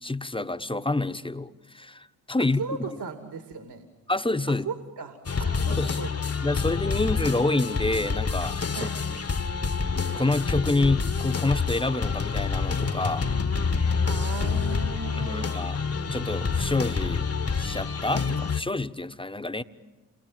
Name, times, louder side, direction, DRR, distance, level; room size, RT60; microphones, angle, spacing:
voice 1, 0.0-2.6 4.1-4.7 5.7-6.0 6.4-8.9 10.1-13.3 15.2-15.8 16.1-17.3 17.5-19.6, left 2 dB, 10° left, 10 dB, 1.2 m, -27 dB
voice 2, 2.6-3.8 4.5-6.3 8.7-8.9 13.7-15.5, right 5 dB, 60° right, 7 dB, 2.7 m, -37 dB
sound 1, 5.3-18.6, left 5 dB, 30° left, 1.4 m, -27 dB
29.0 x 22.0 x 9.2 m, 1.1 s
hypercardioid pair, 45°, 45 cm